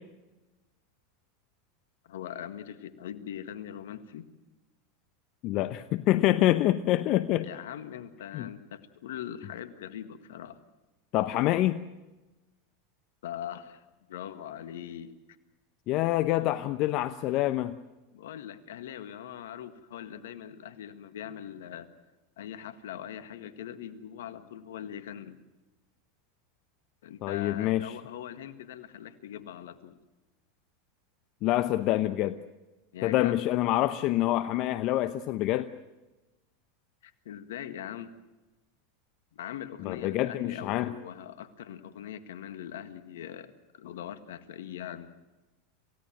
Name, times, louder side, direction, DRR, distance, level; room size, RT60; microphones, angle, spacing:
voice 1, 2.0-4.3 7.4-10.6 13.2-13.8 14.1-15.1 18.1-21.9 22.4-25.4 27.0-30.0 32.9-33.4 37.0-38.1 39.3-45.1, left 10 dB, 75° left, 12 dB, 1.8 m, -41 dB
voice 2, 5.4-7.5 8.3-8.5 11.1-11.8 15.9-17.7 27.2-27.9 31.4-32.4 33.0-35.7 39.8-40.9, left 15 dB, 50° left, 12 dB, 0.9 m, -26 dB
27.5 x 17.0 x 7.6 m, 1.1 s
hypercardioid pair, 95°, 0 cm